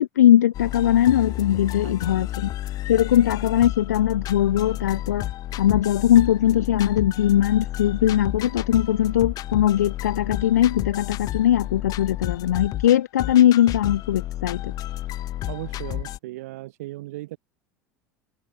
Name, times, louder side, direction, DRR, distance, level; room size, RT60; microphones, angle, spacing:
voice 1, 0.0-2.5 2.8-5.3 5.6-14.7, left 11 dB, 70° left, 0.6 m, -20 dB
sound 1, 0.5-16.2, left 14 dB, 45° left, 3.8 m, -31 dB
voice 2, 1.8-2.2 15.5-17.4, right 18 dB, 65° right, 1.5 m, -37 dB
open air
figure-of-eight pair, 75°, 9 cm